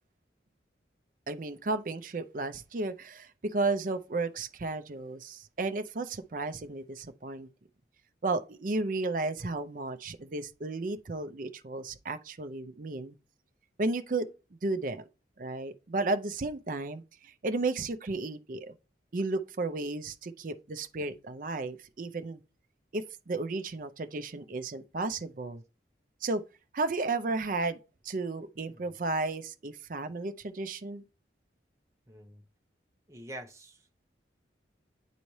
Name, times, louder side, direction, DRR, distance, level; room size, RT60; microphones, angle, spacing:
voice 1, 1.3-7.5 8.2-13.2 13.8-14.3 14.6-15.0 15.4-18.7 19.1-22.4 22.9-25.6 26.2-26.4 26.7-27.8 28.0-31.0, right 3 dB, 45° right, 0.5 m, -33 dB
voice 2, 32.1-32.4 33.1-33.9, right 1 dB, 15° right, 0.9 m, -46 dB
9.9 x 4.1 x 3.2 m
head